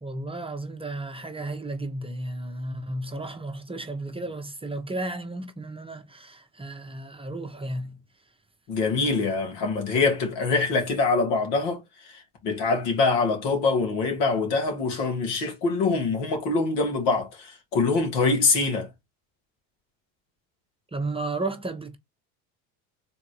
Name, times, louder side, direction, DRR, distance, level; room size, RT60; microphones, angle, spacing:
voice 1, 0.0-8.0 20.9-22.0, right 2 dB, 15° right, 0.7 m, -33 dB
voice 2, 8.7-11.8 12.4-18.9, left 4 dB, 85° left, 2.0 m, -24 dB
3.9 x 2.5 x 4.4 m
supercardioid pair, 100°, 43 cm